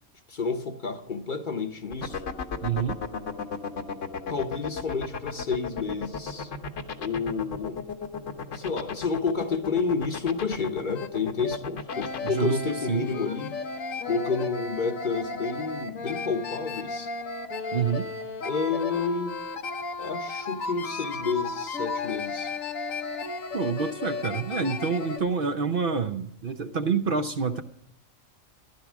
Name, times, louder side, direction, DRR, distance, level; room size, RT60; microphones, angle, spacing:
voice 1, 0.3-2.2 4.3-6.5 7.0-7.9 8.5-13.6 14.1-17.1 18.4-19.4 20.0-22.5, left 4 dB, 45° left, 0.9 m, -30 dB
sound 1, 1.9-12.3, left 6 dB, 70° left, 1.4 m, -33 dB
voice 2, 2.6-3.0 12.2-13.1 17.7-18.1 23.5-27.6, right 5 dB, 55° right, 0.7 m, -27 dB
sound 2, 10.6-10.7 10.9-11.1 11.4-11.6 11.9-25.2, left 4 dB, 90° left, 1.4 m, -34 dB
14.5 x 11.5 x 6.1 m
omnidirectional pair, 1.3 m